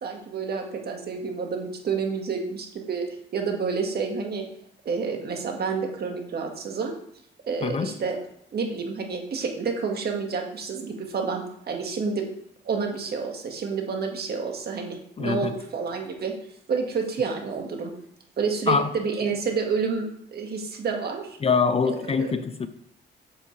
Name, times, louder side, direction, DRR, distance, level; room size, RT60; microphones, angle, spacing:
voice 1, 0.0-3.1 3.3-4.5 4.9-6.9 7.5-8.2 8.5-12.3 12.7-16.3 16.7-17.9 18.4-21.4 21.8-22.4, right 5 dB, 55° right, 2 dB, 1.8 m, -29 dB
voice 2, 7.6-7.9 15.2-15.5 18.7-18.9 21.4-22.7, left 5 dB, 30° left, 11 dB, 0.6 m, -24 dB
8.5 x 7.4 x 3.3 m, 0.71 s
cardioid pair, 90°, 20 cm